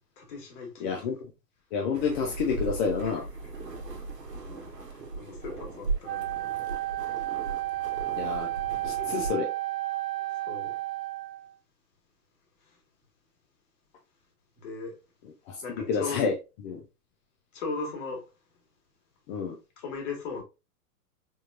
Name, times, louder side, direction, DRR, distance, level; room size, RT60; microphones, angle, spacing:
voice 1, 0.2-0.9 3.0-3.5 4.9-6.4 6.9-7.0 10.5-10.7 14.6-15.0 15.6-16.2 17.5-18.3 19.8-20.4, left 4 dB, 45° left, 1.9 m, -38 dB
voice 2, 0.8-1.2 1.7-3.3 8.2-8.5 8.8-9.5 15.5-16.3 16.6-16.8 19.3-19.5, left 5 dB, 30° left, 0.7 m, -29 dB
sound 1, 1.9-9.3, right 3 dB, 85° right, 1.1 m, -37 dB
Wind instrument woodwind instrument, 6.0-11.5, right 16 dB, 30° right, 0.9 m, -32 dB
4.2 x 3.6 x 2.4 m
figure-of-eight pair, 105°, 48 cm